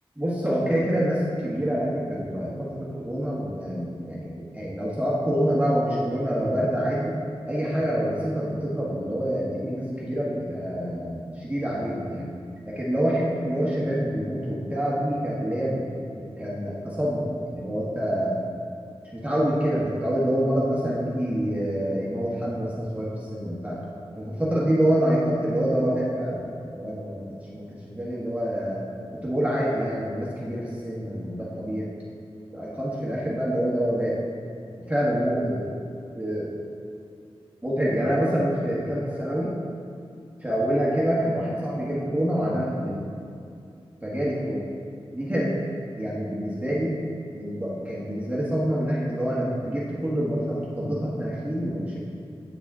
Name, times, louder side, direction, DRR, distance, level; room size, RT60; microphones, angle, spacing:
voice 1, 0.2-7.2 7.5-12.3 12.7-15.8 16.2-18.3 19.1-23.8 24.1-26.4 26.7-27.2 27.5-28.8 29.2-31.9 32.5-34.2 34.9-35.7 36.1-36.5 37.6-39.5 40.4-43.0 44.0-44.6 45.1-45.5 46.0-47.0 47.3-52.0, equal, 15° right, -6 dB, 1.2 m, -26 dB
7.5 x 4.2 x 3.6 m, 2.4 s
cardioid pair, 40°, 10 cm